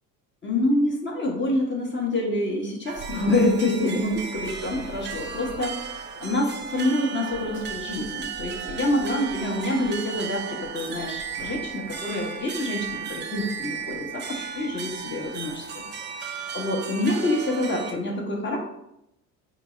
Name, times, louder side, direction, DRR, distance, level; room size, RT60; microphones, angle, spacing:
voice 1, 0.4-16.2 16.5-18.6, left 1 dB, 25° left, -1 dB, 1.0 m, -27 dB
sound 1, 2.9-17.9, right 6 dB, 25° right, 0.4 m, -35 dB
3.7 x 2.0 x 3.7 m, 0.82 s
hypercardioid pair, 65°, 50 cm